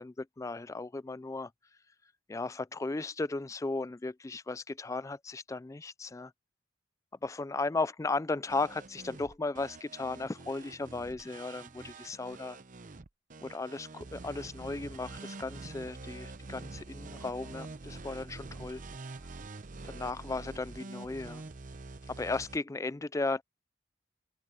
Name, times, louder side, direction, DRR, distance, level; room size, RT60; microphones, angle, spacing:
voice 1, 0.0-1.5 2.3-6.3 7.2-12.6 13.4-18.8 19.8-21.4 22.1-23.4, left 3 dB, 15° left, 0.3 m, -36 dB
sound 1, 8.5-22.6, right 3 dB, 45° right, 0.8 m, -46 dB
open air
head